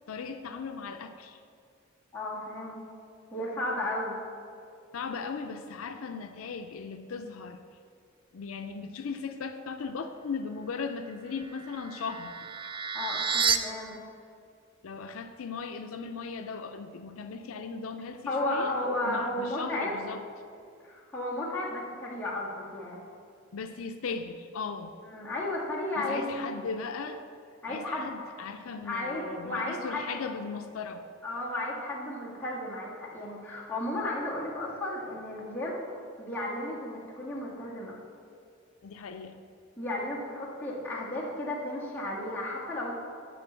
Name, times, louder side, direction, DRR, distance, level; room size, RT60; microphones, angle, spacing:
voice 1, 0.1-1.4 4.9-7.6 8.3-12.3 14.8-18.8 19.0-20.2 23.5-24.9 26.0-27.2 27.7-31.0 38.8-39.4, left 5 dB, 85° left, 7 dB, 0.5 m, -37 dB
voice 2, 2.1-2.8 3.3-4.2 12.9-14.0 18.3-19.9 20.8-23.0 25.1-26.5 27.6-28.1 28.8-30.2 31.2-35.8 36.2-38.0 39.8-42.9, left 1 dB, 10° left, -7 dB, 1.8 m, -33 dB
sound 1, 11.3-13.6, right 6 dB, 25° right, 0.4 m, -30 dB
10.0 x 3.8 x 7.2 m, 2.4 s
head